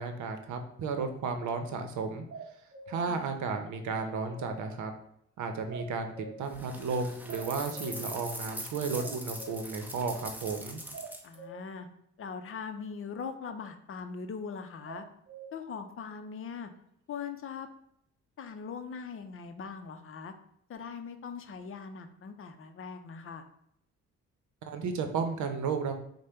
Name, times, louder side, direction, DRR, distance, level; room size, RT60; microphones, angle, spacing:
voice 1, 0.0-2.2 2.9-4.9 5.4-10.8 24.6-25.9, right 4 dB, 75° right, 7 dB, 0.7 m, -33 dB
sound 1, 2.3-3.0 3.9-4.6 5.7-6.5 7.3-8.0 8.9-9.6 10.9-11.6 14.9-15.5, right 3 dB, 40° right, 0.8 m, -44 dB
Pouring nuts into glass bowl, 6.5-11.3, right 1 dB, 5° right, 0.8 m, -42 dB
voice 2, 11.2-11.9 12.2-15.0 15.5-16.7 17.1-17.7 18.4-20.3 20.7-23.5, left 6 dB, 45° left, 8 dB, 0.6 m, -41 dB
5.0 x 2.2 x 4.3 m, 0.71 s
cardioid pair, 90°, 30 cm